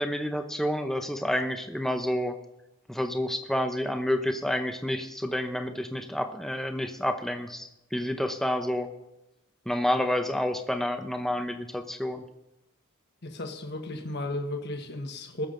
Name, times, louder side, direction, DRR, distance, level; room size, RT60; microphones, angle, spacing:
voice 1, 0.0-2.4 2.9-8.9 9.7-12.2, left 1 dB, ahead, 6 dB, 0.8 m, -29 dB
voice 2, 13.2-15.5, left 1 dB, 50° left, 5 dB, 1.3 m, -34 dB
20.5 x 7.2 x 3.9 m, 0.92 s
head